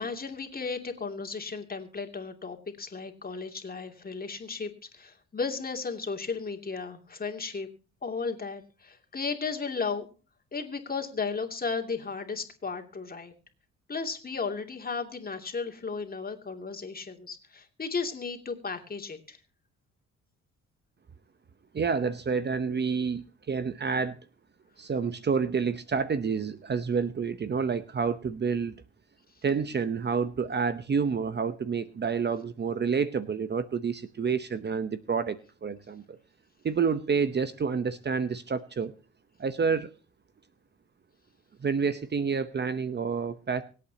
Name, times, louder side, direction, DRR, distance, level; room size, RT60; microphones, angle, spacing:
voice 1, 0.0-7.7 8.0-10.1 10.5-13.3 13.9-19.4, left 4 dB, 30° left, 4 dB, 2.7 m, -34 dB
voice 2, 21.7-24.2 24.8-28.8 29.4-36.2 36.6-38.9 39.4-39.9 41.6-43.6, right 5 dB, 35° right, 12 dB, 0.9 m, -29 dB
25.0 x 8.5 x 2.9 m, 0.36 s
cardioid pair, 90°, 30 cm